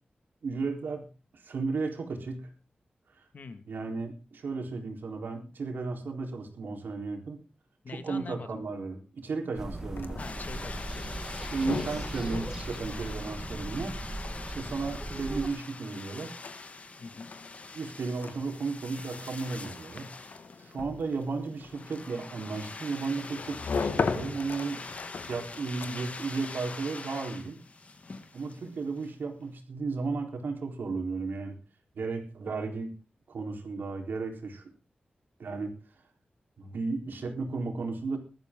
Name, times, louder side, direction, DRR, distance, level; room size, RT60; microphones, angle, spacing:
voice 1, 0.4-1.1 1.3-2.5 3.7-7.4 7.9-10.2 11.5-14.0 14.5-16.3 17.7-20.1 20.6-24.9 25.2-27.6 28.3-31.6 32.0-32.9 33.3-34.7 35.4-35.7 36.6-38.2, right 4 dB, 85° right, 4 dB, 3.9 m, -34 dB
voice 2, 3.3-3.7 7.8-8.7 10.1-11.1 17.0-17.3, left 4 dB, 60° left, 9 dB, 2.0 m, -43 dB
sound 1, 9.6-15.5, right 1 dB, 15° right, 1.5 m, -38 dB
sound 2, 9.7-26.3, left 5 dB, 75° left, 1.8 m, -39 dB
sound 3, 10.2-29.1, left 3 dB, 45° left, 2.2 m, -44 dB
19.5 x 13.0 x 3.8 m, 0.33 s
wide cardioid pair, 125°, 3 cm